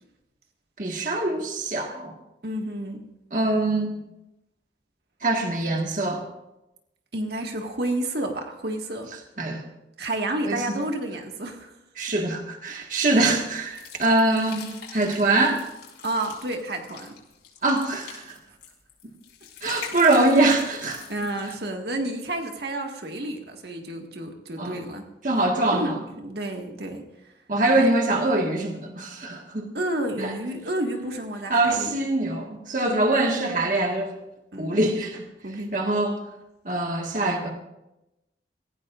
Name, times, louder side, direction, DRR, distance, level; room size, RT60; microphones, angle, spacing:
voice 1, 0.8-2.1 3.3-4.0 5.2-6.2 9.4-9.6 10.5-10.6 12.0-15.6 17.6-18.4 19.6-21.1 24.6-24.8 25.2-26.0 27.5-29.7 30.2-30.3 31.5-34.1 34.6-35.2 35.7-36.2 36.7-37.5, right 2 dB, 45° right, 1 dB, 1.7 m, -23 dB
voice 2, 2.4-3.0 7.1-9.1 10.0-11.7 16.0-17.1 21.1-25.1 25.7-27.0 27.8-27.9 29.7-32.0 34.5-34.9 35.4-35.8, right 1 dB, 65° right, 2 dB, 1.8 m, -30 dB
sound 1, 13.0-21.7, left 7 dB, 75° left, 5.7 m, -44 dB
27.0 x 16.0 x 2.5 m, 0.92 s
head